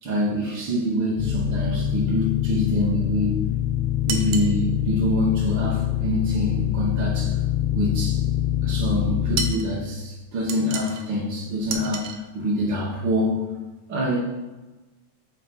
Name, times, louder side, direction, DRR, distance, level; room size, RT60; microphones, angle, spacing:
voice 1, 0.0-3.4 4.0-7.4 7.7-8.2 8.6-13.5 13.9-14.2, equal, 70° right, -5 dB, 1.1 m, -26 dB
sound 1, 1.2-9.6, left 11 dB, 85° left, 2.1 m, -24 dB
sound 2, 4.1-4.5 9.4-9.7 10.5-11.1 11.7-12.2, right 5 dB, 90° right, 1.4 m, -30 dB
7.4 x 3.9 x 4.4 m, 1.2 s
omnidirectional pair, 3.7 m